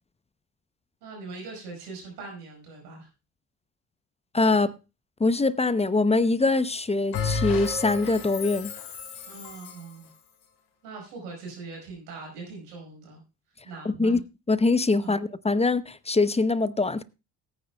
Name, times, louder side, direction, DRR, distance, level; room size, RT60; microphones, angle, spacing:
voice 1, 1.0-3.1 9.3-10.1 10.8-13.2 13.6-14.2 15.0-15.2, right 4 dB, 90° right, 4.9 m, -41 dB
voice 2, 4.3-4.7 5.2-8.7 13.8-14.2 14.5-17.0, left 3 dB, 15° left, 0.6 m, -23 dB
Bell, 7.1-9.9, left 5 dB, 65° left, 2.8 m, -32 dB
18.0 x 9.4 x 2.2 m
hypercardioid pair, 55°, 46 cm